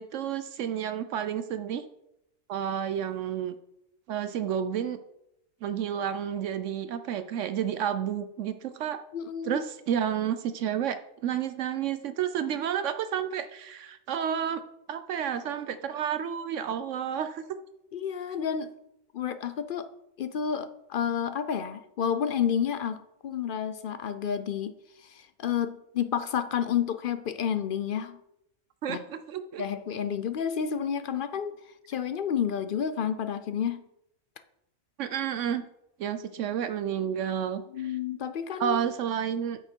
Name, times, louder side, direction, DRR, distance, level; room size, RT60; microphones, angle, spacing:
voice 1, 0.0-1.9 2.5-3.5 4.1-5.0 5.6-9.0 9.4-11.0 11.2-14.6 14.9-17.5 28.8-29.6 35.0-35.6 36.0-37.9 38.6-39.6, right 9 dB, 70° right, 11 dB, 0.9 m, -30 dB
voice 2, 9.1-9.6 17.9-18.7 19.1-19.9 20.2-24.7 25.0-28.2 28.9-29.0 29.6-31.5 31.9-33.8 37.7-38.9, left 8 dB, 60° left, 11 dB, 0.5 m, -30 dB
9.1 x 6.6 x 4.5 m, 0.82 s
omnidirectional pair, 1.4 m